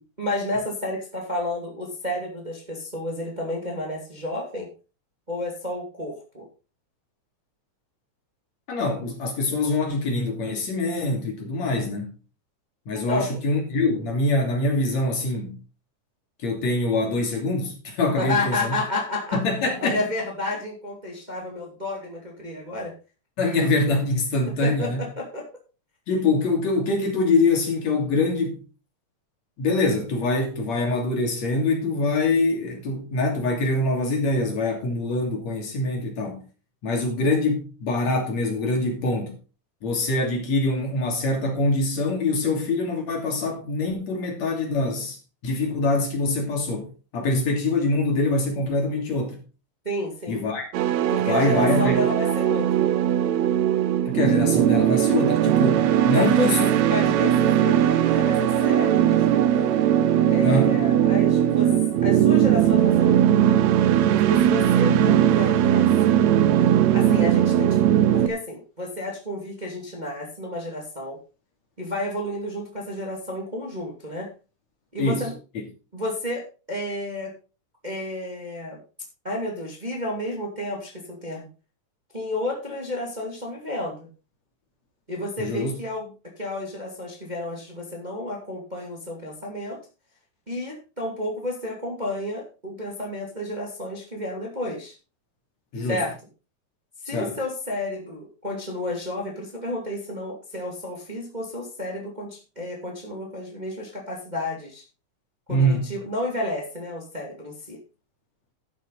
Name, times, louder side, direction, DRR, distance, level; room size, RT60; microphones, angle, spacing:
voice 1, 0.2-4.7 5.3-6.5 12.9-13.3 18.2-19.4 19.8-22.9 24.6-25.5 49.8-50.4 51.1-52.8 56.1-56.5 56.8-59.7 60.3-61.7 62.0-63.5 64.1-66.3 66.9-67.8 68.1-71.2 71.8-74.3 74.9-75.3 75.9-77.3 77.8-78.8 79.2-81.5 82.1-84.1 85.1-89.8 90.5-94.9 95.9-96.1 97.0-104.8 105.5-107.8, left 1 dB, 15° right, 2.2 m, -31 dB
voice 2, 8.7-12.1 12.9-15.6 16.4-18.8 19.3-20.0 23.4-25.1 26.1-28.6 29.6-36.4 36.8-39.3 39.8-45.2 45.4-46.9 47.1-49.4 50.3-50.7 51.2-52.0 54.1-56.7 60.4-60.8 75.0-75.3 85.4-85.8 95.7-96.0 97.1-97.4 105.5-105.9, left 2 dB, 60° left, 4.0 m, -24 dB
sound 1, 50.7-68.3, right 11 dB, 75° right, 1.8 m, -19 dB
11.5 x 8.3 x 4.1 m
omnidirectional pair, 3.6 m